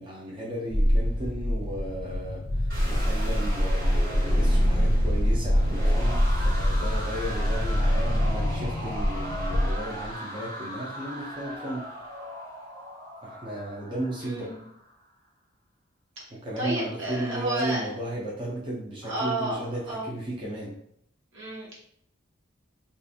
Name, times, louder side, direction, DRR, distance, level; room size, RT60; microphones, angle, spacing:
voice 1, 0.0-11.9 13.2-14.6 16.3-20.8, right 1 dB, 25° right, -4 dB, 0.5 m, -35 dB
sound 1, 0.7-10.1, equal, 50° left, 0.5 m, -25 dB
sound 2, 2.7-14.7, equal, 50° right, 1.0 m, -37 dB
voice 2, 14.2-14.6 16.6-17.9 19.0-20.1 21.3-21.8, right 2 dB, 75° right, -4 dB, 1.0 m, -31 dB
2.4 x 2.4 x 2.6 m, 0.69 s
head